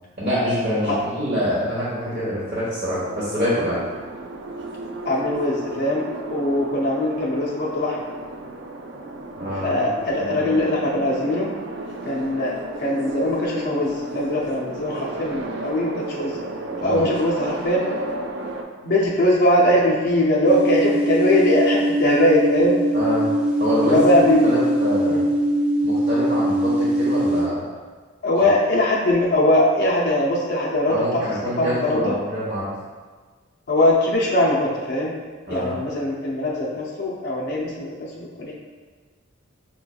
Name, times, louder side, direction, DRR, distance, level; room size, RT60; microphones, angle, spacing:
voice 1, 0.2-3.8 9.4-9.8 10.1-10.5 16.8-17.0 22.9-23.3 23.6-25.2 25.8-27.6 30.9-32.7 35.5-35.8, equal, 50° right, -11 dB, 1.0 m, -25 dB
sound 1, 3.0-18.6, right 2 dB, 65° right, 0.4 m, -33 dB
voice 2, 5.0-8.0 9.6-11.5 12.1-16.4 16.8-17.9 18.8-22.8 23.8-24.5 25.1-25.2 28.2-31.2 31.6-32.2 33.7-35.1 35.5-38.5, left 1 dB, 60° left, -4 dB, 0.5 m, -21 dB
sound 2, 20.5-27.4, right 1 dB, 5° right, 0.4 m, -21 dB
5.6 x 3.1 x 2.3 m, 1.4 s
head